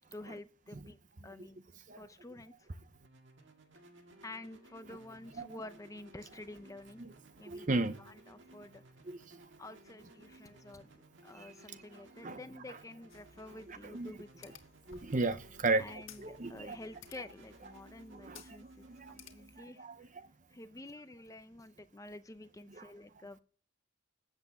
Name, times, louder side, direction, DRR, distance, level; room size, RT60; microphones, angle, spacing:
voice 1, 0.1-1.0 1.2-1.6 1.9-2.7 4.2-7.0 7.4-7.7 8.0-8.8 9.6-14.6 15.8-20.1 20.5-23.4, left 2 dB, 15° left, 0.6 m, -50 dB
sound 1, 2.9-20.7, right 2 dB, 65° right, 1.9 m, -59 dB
voice 2, 7.4-8.0 9.1-9.4 11.4-11.5 12.2-12.4 13.7-14.1 14.9-15.8 16.2-16.8 18.1-18.4 18.8-19.2 19.6-20.1 22.8-22.9, right 3 dB, 40° right, 0.7 m, -35 dB
sound 2, 13.1-19.6, left 6 dB, 75° left, 1.8 m, -58 dB
13.5 x 8.3 x 7.3 m
head